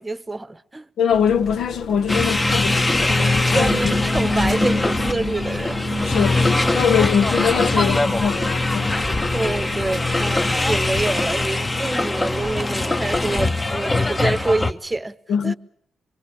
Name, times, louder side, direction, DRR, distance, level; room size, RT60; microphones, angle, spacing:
voice 1, 0.0-0.9 3.5-5.8 9.3-15.2 15.4-15.5, right 2 dB, 15° right, 0.9 m, -26 dB
voice 2, 1.0-3.9 5.9-8.9 15.3-15.5, left 7 dB, 70° left, 0.9 m, -22 dB
sound 1, 1.1-11.5, left 3 dB, 90° left, 3.3 m, -37 dB
sound 2, 2.1-14.7, left 2 dB, 20° left, 1.0 m, -21 dB
sound 3, 3.1-12.8, left 3 dB, 40° left, 2.2 m, -34 dB
25.0 x 24.0 x 6.9 m
cardioid pair, 95°, 0 cm